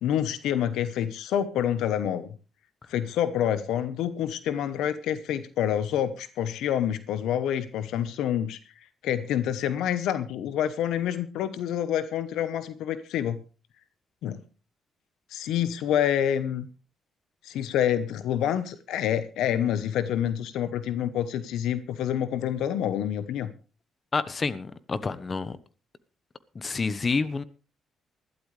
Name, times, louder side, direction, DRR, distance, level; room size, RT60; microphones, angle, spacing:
voice 1, 0.0-2.3 2.9-8.6 9.0-13.4 14.2-14.4 15.3-16.7 17.4-23.5, left 10 dB, 85° left, 1.0 m, -27 dB
voice 2, 24.1-25.6 26.5-27.4, left 4 dB, 35° left, 1.1 m, -28 dB
20.0 x 12.5 x 3.3 m
cardioid pair, 90°, 0 cm